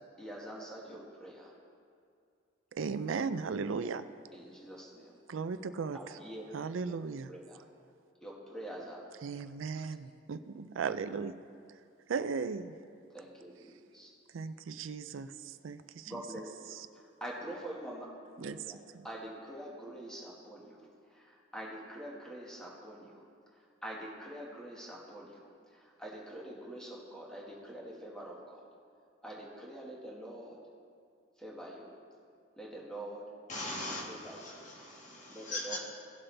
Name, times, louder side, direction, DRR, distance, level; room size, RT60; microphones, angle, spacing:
voice 1, 0.2-1.5 4.3-5.2 5.9-6.4 7.3-7.6 8.2-9.0 13.1-14.1 16.1-18.1 18.4-18.7 19.0-20.8 21.1-23.2 23.8-25.4 25.7-28.6 29.2-30.6 31.4-31.9 32.6-33.3 34.1-34.5 35.3-35.8, right 1 dB, 5° left, -4 dB, 1.7 m, -45 dB
voice 2, 2.7-4.0 5.3-6.2 6.5-7.3 9.2-11.4 12.1-12.7 14.3-16.2 16.7-16.9 18.4-19.1, right 5 dB, 85° right, 12 dB, 0.4 m, -37 dB
voice 3, 33.5-35.8, left 2 dB, 40° left, -3 dB, 1.8 m, -40 dB
17.5 x 7.7 x 3.4 m, 2.4 s
head